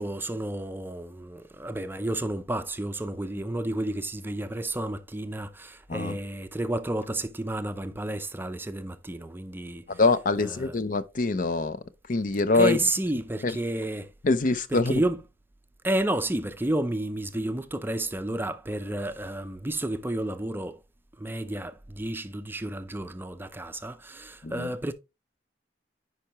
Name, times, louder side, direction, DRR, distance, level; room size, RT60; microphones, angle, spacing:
voice 1, 0.0-9.8 10.4-10.7 12.5-14.1 14.7-15.2 15.8-20.8 21.2-24.9, right 1 dB, 10° right, 0.5 m, -31 dB
voice 2, 9.9-11.8 12.1-12.8 13.4-13.6 14.2-14.9 24.4-24.7, left 3 dB, 50° left, 0.7 m, -24 dB
10.5 x 4.8 x 3.0 m
head